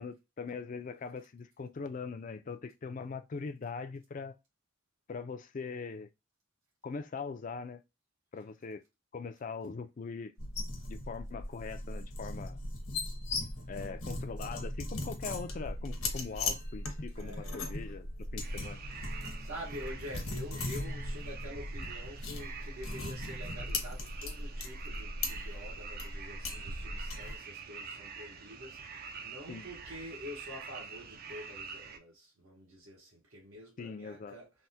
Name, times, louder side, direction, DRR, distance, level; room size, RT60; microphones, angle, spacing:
voice 1, 0.0-4.3 5.1-6.1 6.8-7.8 8.3-8.8 9.1-10.3 10.9-12.6 13.7-18.1 18.3-18.8 29.5-29.7 33.8-34.4, left 4 dB, 40° left, 0.3 m, -41 dB
sound 1, 10.4-27.4, left 2 dB, 80° left, 1.1 m, -38 dB
voice 2, 17.1-17.7 19.4-34.5, equal, 70° right, 0.9 m, -47 dB
sound 2, 18.4-32.0, right 5 dB, 45° right, 0.4 m, -46 dB
3.3 x 2.1 x 2.7 m
head